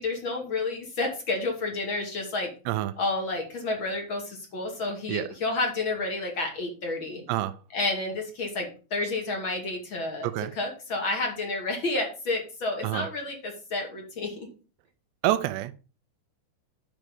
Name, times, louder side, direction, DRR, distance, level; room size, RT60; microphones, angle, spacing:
voice 1, 0.0-2.5 3.0-7.2 7.7-14.5, left 2 dB, 35° left, 2.2 m, -30 dB
voice 2, 15.2-15.7, right 15 dB, 80° right, 2.8 m, -27 dB
10.5 x 4.8 x 5.4 m
omnidirectional pair, 5.2 m